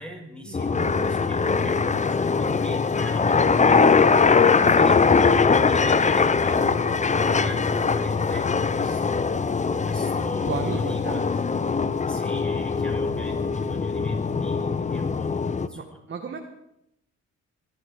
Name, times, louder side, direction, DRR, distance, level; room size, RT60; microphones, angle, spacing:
voice 1, 0.0-6.6 7.1-9.3 9.8-11.4 12.1-16.0, left 1 dB, 5° left, 0 dB, 5.2 m, -38 dB
sound 1, 0.5-15.7, left 5 dB, 25° left, 0.8 m, -22 dB
voice 2, 6.5-7.1 10.4-11.2 15.7-16.4, right 5 dB, 40° right, 3 dB, 1.8 m, -34 dB
22.0 x 12.0 x 4.9 m, 0.83 s
cardioid pair, 90°, 30 cm